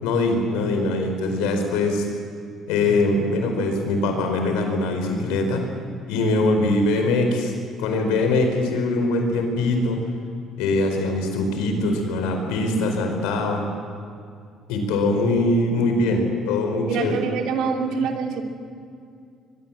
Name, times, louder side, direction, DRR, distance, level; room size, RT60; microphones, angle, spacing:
voice 1, 0.0-2.1 2.7-5.6 6.1-7.5 7.8-10.0 10.6-13.6 14.7-17.1, left 2 dB, 90° left, 4 dB, 4.6 m, -22 dB
voice 2, 16.8-18.4, right 5 dB, 75° right, 3 dB, 3.0 m, -25 dB
22.5 x 22.0 x 7.5 m, 2.3 s
supercardioid pair, 85°, 0 cm